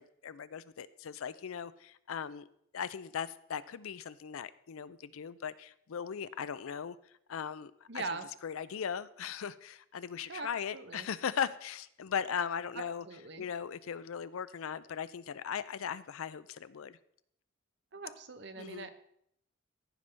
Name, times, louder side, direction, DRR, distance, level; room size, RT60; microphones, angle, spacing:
voice 1, 0.0-2.5 2.7-7.0 7.3-13.0 13.4-17.0 18.6-18.9, left 7 dB, 85° left, 16 dB, 0.4 m, -38 dB
voice 2, 7.9-8.3 10.3-10.5 10.7-11.1 13.0-13.4 17.9-18.9, right 4 dB, 55° right, 9 dB, 0.8 m, -41 dB
15.0 x 5.3 x 3.4 m, 0.70 s
head